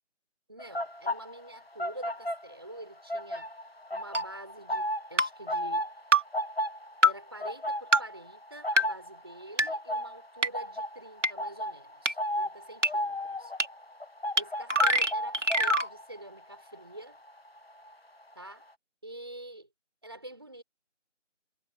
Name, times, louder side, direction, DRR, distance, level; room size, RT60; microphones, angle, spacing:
voice 1, 0.5-3.5 3.9-5.9 7.0-13.5 14.3-17.2 18.3-18.6 19.0-19.7 20.0-20.6, right 1 dB, 20° right, 4.5 m, -46 dB
sound 1, 0.6-2.8 3.1-17.9 18.2-18.5, equal, 55° left, 1.4 m, -35 dB
sound 2, 4.1-4.2 5.2-5.3 6.1-6.2 7.0-7.1 7.9-8.0 8.8-8.9 9.6-9.7 10.4-10.5 11.2-11.3 12.1-12.2 12.8-12.9 13.6-13.7 14.4-14.5 14.7-15.9, right 1 dB, 75° right, 2.6 m, -23 dB
figure-of-eight pair, 175°, 37 cm